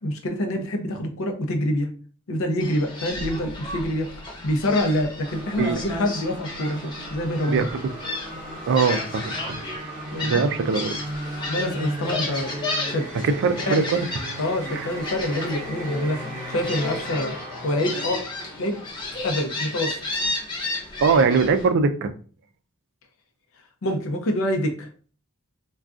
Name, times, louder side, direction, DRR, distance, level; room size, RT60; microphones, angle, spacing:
voice 1, 0.0-1.9 2.3-4.1 4.4-7.7 10.1-10.4 11.5-12.5 12.9-13.1 13.6-13.9 14.4-17.3 17.6-18.2 18.6-18.8 19.2-19.9 23.8-24.9, left 1 dB, 65° left, 4 dB, 0.6 m, -26 dB
Gull seagull, 2.6-21.7, left 2 dB, 20° left, 0.7 m, -33 dB
sound 1, 5.2-20.1, right 1 dB, 35° right, 1.0 m, -37 dB
voice 2, 8.7-9.6 10.2-11.0 13.2-14.1 14.7-14.9 21.0-22.1, right 5 dB, 60° right, 9 dB, 0.3 m, -21 dB
3.5 x 2.3 x 2.4 m, 0.41 s
head